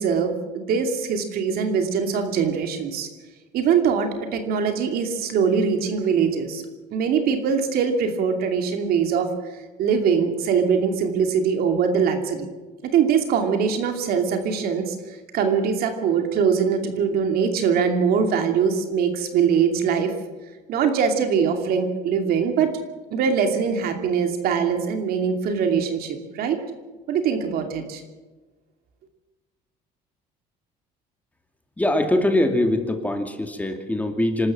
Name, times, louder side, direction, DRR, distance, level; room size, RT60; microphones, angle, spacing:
voice 1, 0.0-3.1 3.5-6.6 6.9-9.3 9.8-12.5 12.9-20.1 20.7-22.7 23.1-26.6 27.1-28.0, right 6 dB, 70° right, 5 dB, 2.7 m, -22 dB
voice 2, 31.8-34.5, left 1 dB, 10° left, 5 dB, 2.4 m, -22 dB
26.0 x 13.0 x 7.5 m, 1.3 s
cardioid pair, 115°, 16 cm